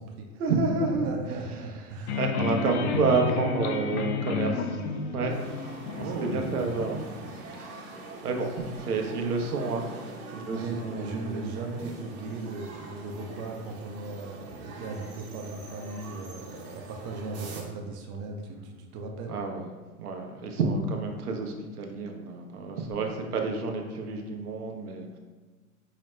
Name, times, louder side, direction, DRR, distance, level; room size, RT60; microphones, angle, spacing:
voice 1, 0.4-1.1 1.9-4.8 5.1-6.0 6.3-7.0 7.3-9.9 10.3-11.9 17.5-17.7 19.3-19.7 20.0-25.2, right 4 dB, 90° right, 3 dB, 0.7 m, -30 dB
voice 2, 1.0-2.2 5.9-6.6 10.4-19.3, right 3 dB, 25° right, 2 dB, 0.4 m, -37 dB
sound 1, 2.1-7.0, left 5 dB, 50° left, 0.5 m, -31 dB
sound 2, 5.3-17.6, right 2 dB, 70° right, 1.1 m, -44 dB
4.8 x 2.1 x 3.1 m, 1.4 s
hypercardioid pair, 110°, 44 cm